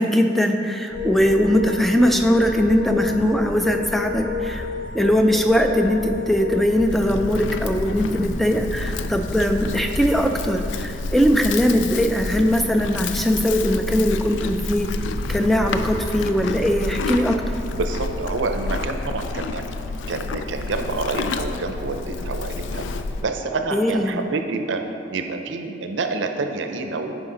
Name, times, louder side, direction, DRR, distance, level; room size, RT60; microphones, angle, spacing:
voice 1, 0.0-4.7 4.9-14.9 15.3-17.4 23.7-24.2, equal, ahead, 4 dB, 0.3 m, -20 dB
sound 1, 0.9-19.4, equal, 70° left, 1.0 m, -36 dB
sound 2, 0.9-6.8, left 6 dB, 20° left, 0.8 m, -31 dB
Livestock farm animals working animals, 6.7-23.3, left 3 dB, 85° left, 0.4 m, -30 dB
voice 2, 17.7-19.7 20.1-22.9 23.2-27.2, right 3 dB, 90° right, 6 dB, 0.6 m, -28 dB
9.8 x 5.0 x 3.8 m, 2.8 s
head